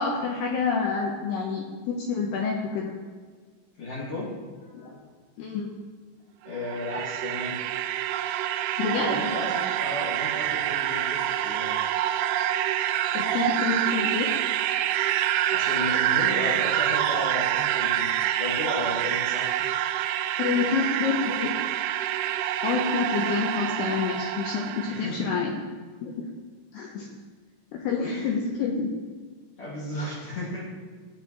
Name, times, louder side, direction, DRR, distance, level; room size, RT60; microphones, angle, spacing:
voice 1, 0.0-2.9 4.7-5.0 5.4-5.7 8.8-9.1 13.1-14.4 20.4-21.5 22.6-25.6 26.0-26.2 26.7-27.1 27.7-28.9, left 5 dB, 75° left, 0 dB, 2.5 m, -28 dB
voice 2, 3.8-4.3 4.6-4.9 6.5-7.6 8.9-11.7 15.5-19.5 20.5-20.7 24.9-25.5 28.0-28.3 29.6-30.7, left 2 dB, 45° left, -5 dB, 1.9 m, -34 dB
sound 1, 6.5-25.1, right 12 dB, 85° right, 3.0 m, -27 dB
15.5 x 9.5 x 3.0 m, 1.5 s
omnidirectional pair, 5.6 m